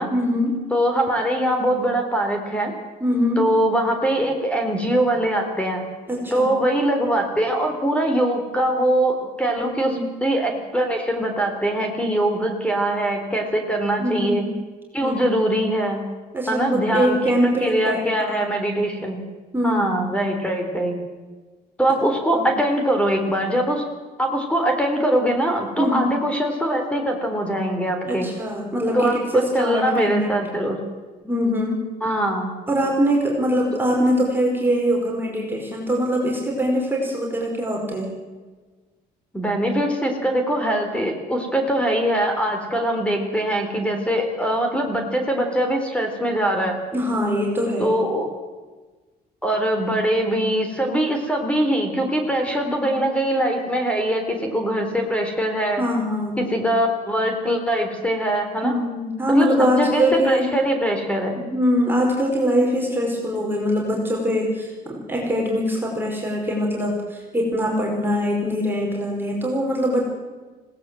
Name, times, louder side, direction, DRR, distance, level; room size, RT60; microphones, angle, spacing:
voice 1, 0.1-0.6 3.0-3.5 6.1-6.5 9.8-10.1 14.0-14.5 15.0-15.3 16.3-18.0 19.5-19.8 22.3-22.5 25.8-26.1 28.0-30.3 31.2-31.8 32.7-38.1 46.9-47.9 52.7-52.9 55.8-56.4 58.6-60.5 61.5-70.0, equal, 10° right, -2 dB, 5.0 m, -22 dB
voice 2, 0.7-2.7 3.4-5.8 6.3-14.5 14.9-16.0 16.5-17.2 17.6-19.2 19.6-21.0 21.8-23.8 24.2-28.3 28.9-30.8 32.0-32.5 39.3-46.8 47.8-48.3 49.4-55.8 56.4-58.7 59.3-61.4, right 1 dB, 5° left, 4 dB, 3.8 m, -22 dB
20.5 x 18.0 x 7.7 m, 1.3 s
cardioid pair, 110°, 17 cm